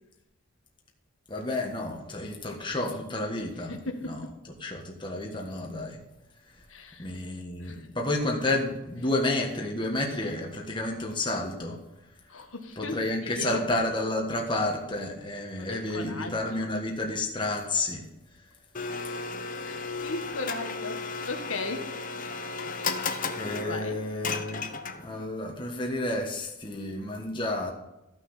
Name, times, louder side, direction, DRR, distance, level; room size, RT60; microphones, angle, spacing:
voice 1, 1.3-3.7 4.0-4.2 4.6-6.0 6.5-6.6 7.0-11.8 12.3-12.4 12.8-18.1 18.4-18.5 23.4-24.7 25.0-27.7, left 2 dB, 20° left, 1 dB, 1.5 m, -30 dB
voice 2, 3.7-4.3 6.7-7.1 7.6-7.9 12.3-13.6 15.6-16.7 19.6-23.0 23.7-24.0, left 3 dB, 70° left, 5 dB, 1.5 m, -37 dB
Domestic sounds home sounds, 18.7-25.2, left 4 dB, 40° left, 0.8 m, -34 dB
14.5 x 6.2 x 5.7 m, 0.96 s
head